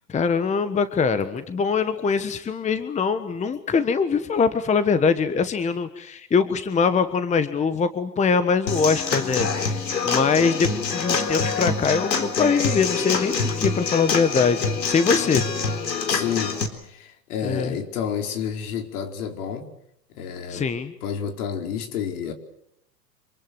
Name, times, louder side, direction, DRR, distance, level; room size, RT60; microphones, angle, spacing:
voice 1, 0.1-15.4 17.4-17.7 20.5-20.9, left 5 dB, 15° left, 12 dB, 1.3 m, -23 dB
Human voice / Acoustic guitar / Drum, 8.7-16.7, left 5 dB, 90° left, 4.1 m, -25 dB
voice 2, 16.0-19.7 20.1-20.7 21.0-22.3, left 8 dB, 60° left, 5 dB, 4.7 m, -30 dB
26.5 x 25.0 x 7.8 m, 0.75 s
hypercardioid pair, 115°, 49 cm